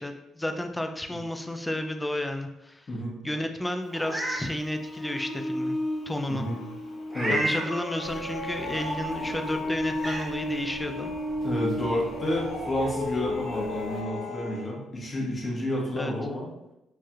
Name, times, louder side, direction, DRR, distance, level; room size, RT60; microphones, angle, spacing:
voice 1, 0.0-2.9 3.2-5.8 6.1-6.5 7.3-11.1 15.9-16.1, left 1 dB, 10° left, 5 dB, 0.4 m, -32 dB
Meow, 3.9-4.4 4.9-5.0 7.1-7.7 9.3-9.4 9.9-10.2, right 2 dB, 25° right, 0.9 m, -30 dB
sound 1, 4.2-14.7, left 1 dB, 60° left, 0.7 m, -34 dB
voice 2, 6.3-6.6 7.1-7.4 11.4-16.5, left 1 dB, 35° left, -3 dB, 1.2 m, -30 dB
sound 2, 8.0-14.0, right 2 dB, 55° right, 0.7 m, -44 dB
4.4 x 3.2 x 2.4 m, 0.90 s
cardioid pair, 90°, 0 cm